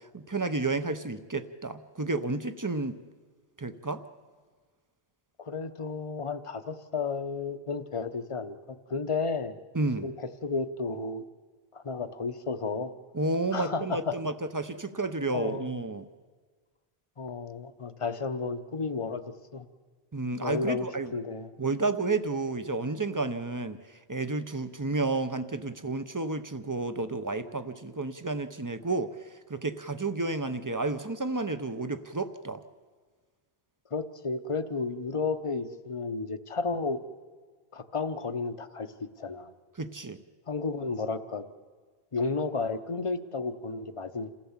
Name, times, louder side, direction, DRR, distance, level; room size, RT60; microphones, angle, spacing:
voice 1, 0.0-3.0 3.6-4.0 9.7-10.1 13.1-16.1 20.1-21.1 21.6-23.8 24.1-29.2 29.5-32.6 39.8-40.2, right 3 dB, 20° right, 11 dB, 0.6 m, -31 dB
voice 2, 5.4-8.6 8.9-9.6 10.0-11.2 11.7-12.9 13.5-14.2 15.3-15.7 17.2-19.2 19.5-19.7 20.4-21.5 33.9-37.0 37.7-39.5 40.5-41.4 42.1-44.3, left 4 dB, 30° left, 10 dB, 0.8 m, -32 dB
28.0 x 15.0 x 7.3 m, 1.5 s
omnidirectional pair, 1.1 m